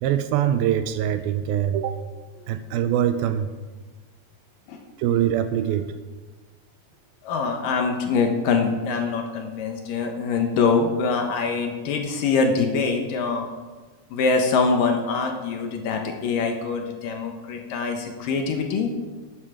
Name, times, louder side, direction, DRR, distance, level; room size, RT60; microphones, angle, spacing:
voice 1, 0.0-2.0 2.5-3.5 5.0-5.9, right 10 dB, 80° right, 10 dB, 2.3 m, -23 dB
voice 2, 7.2-13.5 14.1-18.9, left 4 dB, 70° left, 4 dB, 2.5 m, -24 dB
12.5 x 8.7 x 5.0 m, 1.3 s
omnidirectional pair, 4.5 m